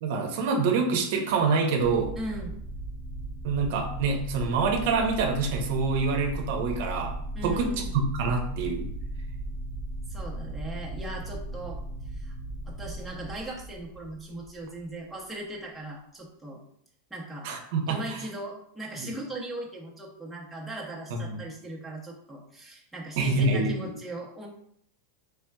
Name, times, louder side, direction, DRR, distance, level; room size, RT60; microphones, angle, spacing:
voice 1, 0.0-2.1 3.4-7.2 7.4-8.9 17.4-18.2 19.0-19.1 21.1-21.4 23.2-23.9, right 4 dB, 60° right, 3 dB, 0.7 m, -26 dB
sound 1, 1.8-14.8, right 1 dB, 50° left, 1.0 m, -37 dB
voice 2, 2.2-2.6 7.3-7.9 10.1-11.8 12.1-12.3 12.7-16.6 17.1-17.5 17.9-24.5, right 1 dB, 5° right, -4 dB, 0.7 m, -39 dB
4.3 x 3.3 x 2.3 m, 0.68 s
supercardioid pair, 155°, 0 cm